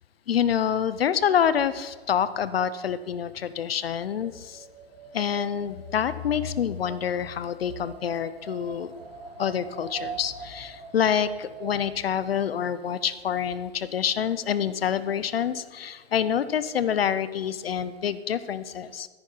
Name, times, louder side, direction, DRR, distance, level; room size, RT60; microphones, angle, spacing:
voice 1, 0.3-4.6 5.1-8.9 9.4-19.1, left 8 dB, 60° left, 15 dB, 0.6 m, -27 dB
Wind, 3.3-12.4, right 5 dB, 70° right, 3.0 m, -44 dB
14.5 x 9.7 x 4.5 m, 1.4 s
hypercardioid pair, 175°, 34 cm